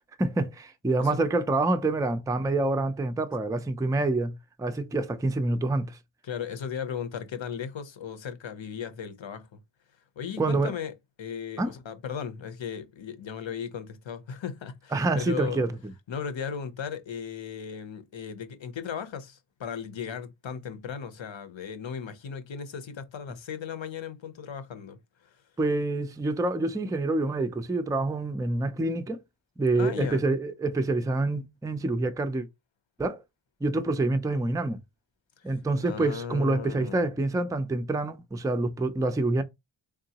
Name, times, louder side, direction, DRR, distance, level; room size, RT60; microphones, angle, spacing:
voice 1, 0.2-4.3 4.6-6.0 10.4-10.7 11.6-11.7 14.9-15.7 25.6-29.2 29.6-32.5 33.0-33.2 33.6-34.8 35.4-39.4, right 2 dB, 10° right, 0.4 m, -27 dB
voice 2, 6.2-9.6 10.2-15.6 16.1-25.4 29.7-30.2 35.4-35.5 35.8-37.1, left 7 dB, 65° left, 0.8 m, -36 dB
3.7 x 3.6 x 2.8 m
wide cardioid pair, 95°, 49 cm